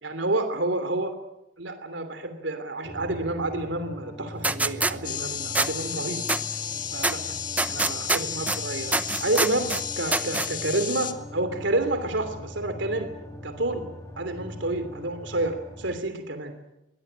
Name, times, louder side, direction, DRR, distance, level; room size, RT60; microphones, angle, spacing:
voice 1, 0.0-1.1 1.6-6.2 6.9-7.2 7.7-8.9 9.2-13.1 13.4-13.8 14.2-16.5, right 2 dB, 85° right, 8 dB, 2.9 m, -29 dB
sound 1, 2.8-16.0, left 1 dB, 15° left, 3.5 m, -41 dB
sound 2, 4.4-4.9 5.5-5.7 6.3-6.4 7.0-7.1 7.6-8.6 8.9-9.8 10.1-10.5, right 2 dB, 10° right, 0.8 m, -24 dB
sound 3, 5.0-11.1, left 8 dB, 45° left, 1.9 m, -33 dB
22.5 x 17.5 x 10.0 m, 0.90 s
head